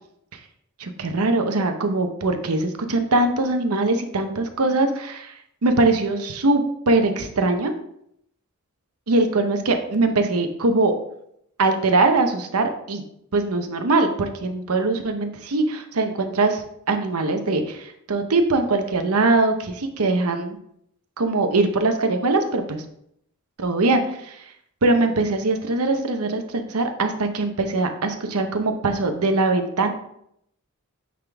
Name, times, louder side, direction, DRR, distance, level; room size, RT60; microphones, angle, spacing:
voice 1, 0.8-5.3 5.6-7.7 9.1-10.9 11.6-13.0 13.3-20.6 21.2-22.8 23.6-24.4 24.8-29.9, right 2 dB, 90° right, 6 dB, 0.9 m, -22 dB
9.4 x 3.7 x 3.5 m, 0.73 s
head